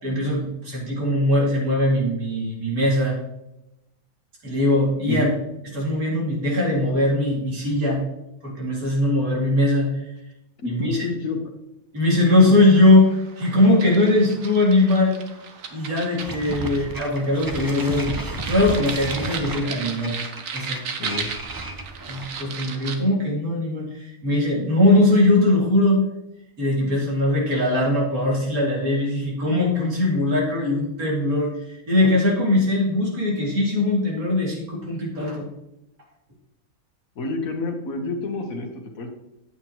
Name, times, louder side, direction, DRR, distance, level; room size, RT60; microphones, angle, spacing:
voice 1, 0.0-3.2 4.4-5.3 5.7-8.0 8.4-10.1 10.7-11.0 11.9-15.2 15.7-20.1 20.5-20.8 22.1-26.0 26.6-35.5, left 1 dB, 90° right, -3 dB, 3.1 m, -20 dB
voice 2, 10.6-11.4 21.0-21.3 37.1-39.1, left 3 dB, 75° left, 2 dB, 1.6 m, -28 dB
sound 1, 12.4-23.0, right 5 dB, 70° right, 1.3 m, -36 dB
sound 2, 16.2-22.4, right 2 dB, 35° right, 0.3 m, -33 dB
8.5 x 8.3 x 3.0 m, 0.88 s
omnidirectional pair, 1.5 m